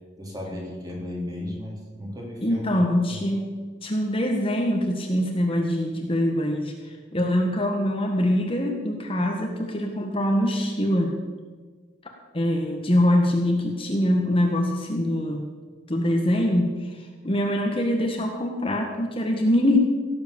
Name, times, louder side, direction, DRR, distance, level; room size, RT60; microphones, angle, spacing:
voice 1, 0.2-3.2, left 1 dB, 20° right, -2 dB, 3.6 m, -35 dB
voice 2, 2.4-3.5 3.8-6.7 7.1-11.1 12.3-15.5 15.9-19.8, left 1 dB, 30° left, 2 dB, 1.5 m, -23 dB
17.0 x 8.0 x 7.0 m, 1.5 s
head